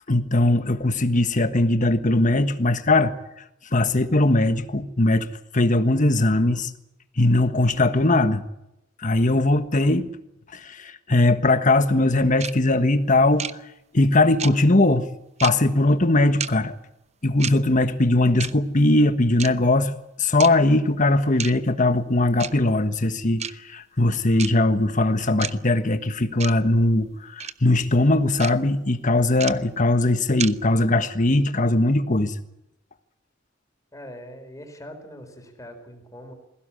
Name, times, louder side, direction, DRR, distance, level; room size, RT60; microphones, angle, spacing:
voice 1, 0.1-3.2 3.7-5.3 5.5-6.7 7.2-8.4 9.0-10.1 10.5-13.5 13.9-15.1 15.4-16.7 17.2-32.3, left 2 dB, 40° left, 1.5 m, -20 dB
sound 1, 12.4-12.5 13.4-13.5 14.4-14.5 15.4-15.5 16.4-16.5 17.4-17.5 18.4-18.5 19.4-19.5 20.4-20.5 21.4-21.5 22.4-22.5 23.4-23.5 24.4-24.5 25.4-25.5 26.4-26.5 27.4-27.5 28.4-28.5 29.4-29.5 30.4-30.5, right 8 dB, 35° right, 0.8 m, -29 dB
voice 2, 33.9-36.3, equal, 15° left, 4.4 m, -42 dB
21.0 x 16.5 x 9.9 m
head